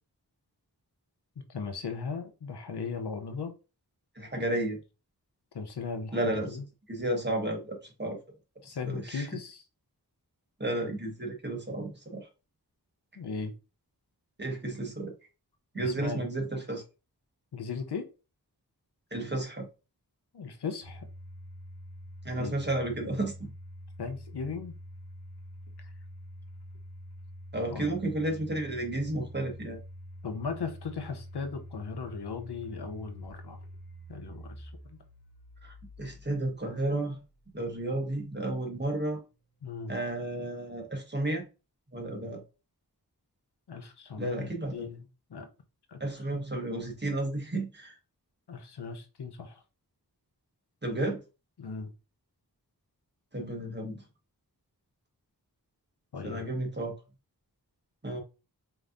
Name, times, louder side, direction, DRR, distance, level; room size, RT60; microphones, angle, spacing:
voice 1, 1.4-3.5 5.5-6.6 8.6-9.6 13.2-13.5 15.7-16.2 17.5-18.1 20.3-21.1 22.4-22.6 24.0-24.8 27.7-28.0 30.2-33.6 34.1-35.0 39.6-40.0 43.7-45.0 45.3-45.5 45.9-46.0 46.3-46.4 48.5-49.6 51.6-51.9 56.1-56.5, left 5 dB, 90° left, 0.7 m, -37 dB
voice 2, 4.1-4.8 6.1-6.6 6.9-8.2 8.9-9.3 10.6-12.3 14.4-15.1 15.7-16.8 19.1-19.7 22.2-23.5 27.5-29.8 35.6-37.2 37.5-39.2 39.9-41.4 41.9-42.4 44.2-44.9 46.0-47.9 50.8-51.2 53.3-54.0 56.2-56.9 58.0-58.2, right 1 dB, 25° right, 1.4 m, -32 dB
Domestic sounds home sounds, 20.8-37.7, equal, 75° left, 1.1 m, -47 dB
5.1 x 3.0 x 2.5 m
wide cardioid pair, 45°, 39 cm